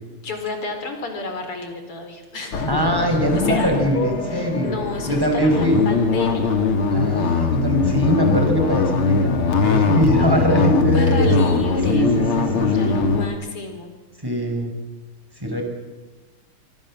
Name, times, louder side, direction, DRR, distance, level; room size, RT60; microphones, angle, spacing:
voice 1, 0.1-2.7 3.3-6.6 10.9-12.1 12.6-13.9, left 3 dB, 90° left, 5 dB, 4.9 m, -30 dB
sound 1, 2.5-13.3, left 4 dB, 75° left, 3.1 m, -21 dB
voice 2, 2.7-4.8 5.1-5.8 6.9-11.4 11.9-13.2 14.2-14.7 15.4-15.6, equal, 10° right, 3 dB, 5.0 m, -22 dB
25.0 x 24.0 x 7.5 m, 1.2 s
omnidirectional pair, 2.4 m